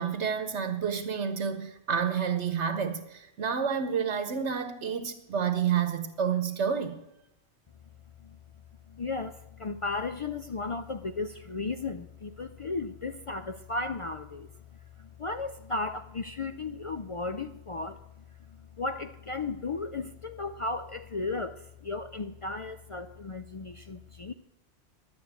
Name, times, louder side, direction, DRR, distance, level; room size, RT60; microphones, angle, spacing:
voice 1, 0.0-7.0, right 7 dB, 75° right, 8 dB, 1.2 m, -29 dB
voice 2, 8.9-14.5 15.0-18.0 18.5-24.3, left 3 dB, 55° left, 9 dB, 0.3 m, -35 dB
11.5 x 9.0 x 8.0 m, 0.88 s
omnidirectional pair, 1.2 m